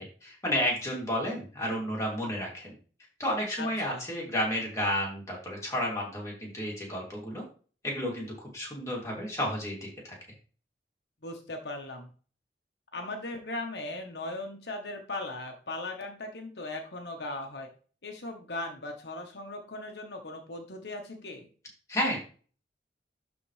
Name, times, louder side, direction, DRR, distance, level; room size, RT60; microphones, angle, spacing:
voice 1, 0.0-2.7 3.2-7.4 7.8-10.1 21.9-22.2, equal, 15° left, -3 dB, 2.9 m, -31 dB
voice 2, 3.6-4.1 11.2-12.1 12.9-17.7 18.0-21.5, left 2 dB, 75° left, 3 dB, 1.3 m, -38 dB
12.0 x 4.2 x 3.4 m, 0.39 s
head